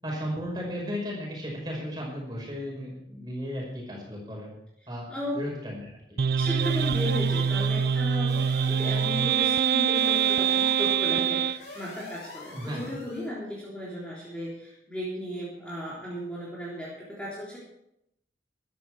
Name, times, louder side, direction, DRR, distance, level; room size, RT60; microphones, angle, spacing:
voice 1, 0.0-4.5 4.9-5.1 5.3-6.2 12.5-12.9, equal, 25° right, -2 dB, 5.8 m, -35 dB
voice 2, 5.1-5.4 6.4-17.6, left 1 dB, 5° left, -7 dB, 3.5 m, -35 dB
sound 1, 6.2-11.6, right 7 dB, 55° right, 0.4 m, -24 dB
sound 2, 6.6-13.3, left 2 dB, 75° left, 6.4 m, -45 dB
15.0 x 12.5 x 4.9 m, 0.81 s
head